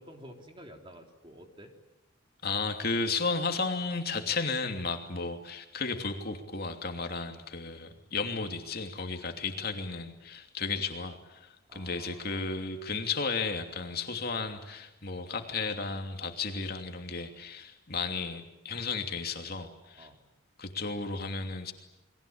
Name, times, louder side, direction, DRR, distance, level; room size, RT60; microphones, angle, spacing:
voice 1, 0.0-1.7 5.1-5.3 11.7-12.5 19.9-20.2, equal, 25° right, 3 dB, 3.5 m, -50 dB
voice 2, 2.4-20.1 20.6-21.7, left 4 dB, 45° left, 4 dB, 2.9 m, -34 dB
29.5 x 23.0 x 8.8 m, 0.91 s
head